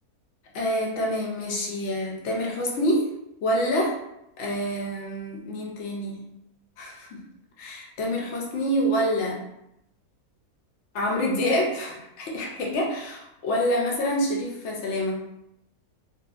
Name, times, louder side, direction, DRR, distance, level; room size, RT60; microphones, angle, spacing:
voice 1, 0.5-3.1 3.4-4.0 4.4-6.2 6.8-7.2 7.6-9.4 10.9-15.2, equal, 65° left, -1 dB, 0.7 m, -27 dB
2.6 x 2.3 x 2.3 m, 0.82 s
omnidirectional pair, 1.6 m